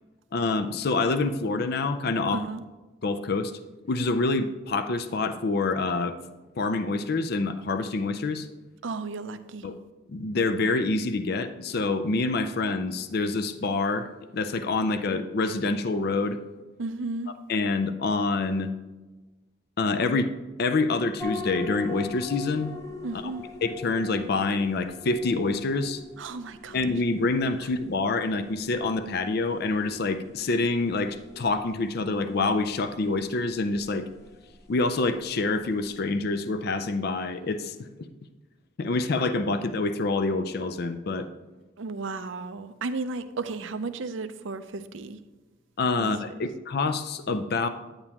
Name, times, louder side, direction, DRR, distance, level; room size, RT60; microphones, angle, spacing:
voice 1, 0.3-2.5 3.0-3.5 3.9-6.2 6.6-8.5 9.6-9.8 10.1-16.4 17.5-18.7 19.8-20.3 20.6-22.7 23.6-26.0 26.7-34.1 34.7-37.7 38.8-41.3 45.8-47.7, left 3 dB, 50° left, 0.4 m, -26 dB
voice 2, 2.3-2.6 8.8-9.7 16.8-17.3 23.0-23.5 26.2-26.8 27.6-27.7 41.8-45.2 46.0-46.4, right 3 dB, 65° right, 0.5 m, -34 dB
sound 1, 21.2-36.0, left 4 dB, 15° left, 0.7 m, -42 dB
9.6 x 8.9 x 2.9 m
head